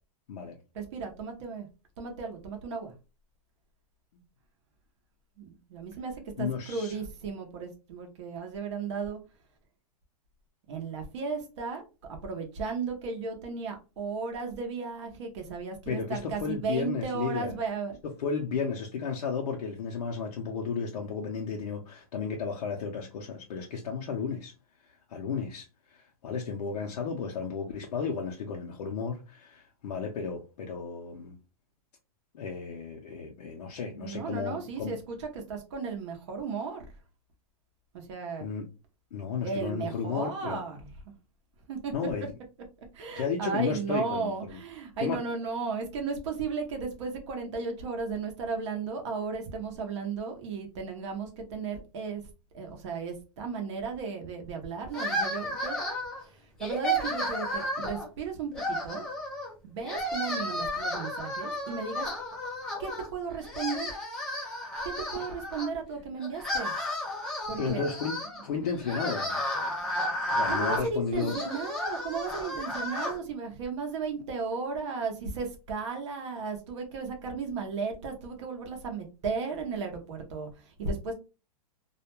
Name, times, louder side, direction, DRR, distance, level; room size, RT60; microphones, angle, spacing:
voice 1, 0.7-1.7 2.0-2.9 5.4-9.2 10.7-11.8 12.1-18.0 33.9-36.9 37.9-38.5 39.4-40.9 41.7-41.9 42.9-52.2 52.5-55.8 56.2-59.1 59.6-62.1 62.8-63.9 64.8-66.7 67.5-67.9 70.5-81.1, right 5 dB, 50° right, 0.7 m, -35 dB
voice 2, 6.4-6.9 15.9-17.5 18.0-24.5 24.8-31.4 32.3-34.9 38.4-38.7 39.1-40.6 41.9-42.3 43.1-44.6 45.0-45.2 67.6-69.4 70.3-71.4, left 5 dB, 85° left, 0.6 m, -33 dB
sound 1, 54.9-56.2 56.6-58.1 58.5-59.5 59.8-63.1 63.4-65.7 66.2-73.2, equal, 5° left, 0.4 m, -33 dB
2.4 x 2.2 x 2.9 m
supercardioid pair, 170°, 19 cm